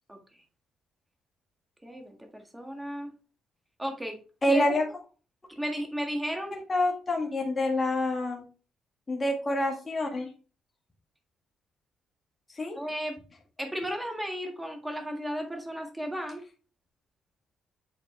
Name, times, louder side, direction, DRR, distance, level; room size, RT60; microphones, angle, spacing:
voice 1, 1.8-3.1 3.8-4.2 4.5-4.8 5.5-6.6 12.8-13.2 13.6-16.4, equal, 10° right, 4 dB, 1.7 m, -34 dB
voice 2, 4.4-4.8 6.5-8.4 9.1-10.3 12.6-12.8, left 1 dB, 25° left, 0 dB, 1.8 m, -27 dB
8.1 x 4.2 x 3.3 m, 0.35 s
cardioid pair, 90°, 0 cm